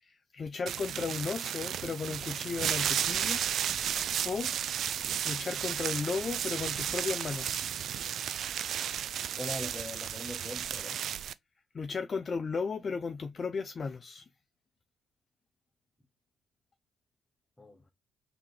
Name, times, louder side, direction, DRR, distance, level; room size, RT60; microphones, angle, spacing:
voice 1, 0.0-3.4 4.2-4.5 5.2-7.7 11.7-14.3, left 5 dB, 40° left, 0.4 m, -35 dB
sound 1, 0.7-11.3, right 9 dB, 65° right, 0.3 m, -33 dB
sound 2, 2.6-8.0, right 3 dB, 35° right, 0.8 m, -54 dB
voice 2, 9.4-11.0 17.6-17.9, left 1 dB, 15° left, 1.1 m, -41 dB
3.7 x 2.8 x 3.2 m
cardioid pair, 90°, 0 cm